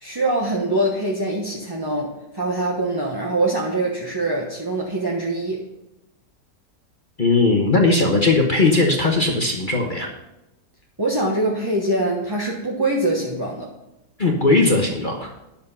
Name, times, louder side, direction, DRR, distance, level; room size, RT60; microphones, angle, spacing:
voice 1, 0.0-5.6 11.0-13.7, right 2 dB, 15° right, -2 dB, 0.9 m, -23 dB
voice 2, 7.2-10.1 14.2-15.3, left 3 dB, 35° left, 0 dB, 1.2 m, -18 dB
10.5 x 7.2 x 5.6 m, 0.92 s
omnidirectional pair, 1.8 m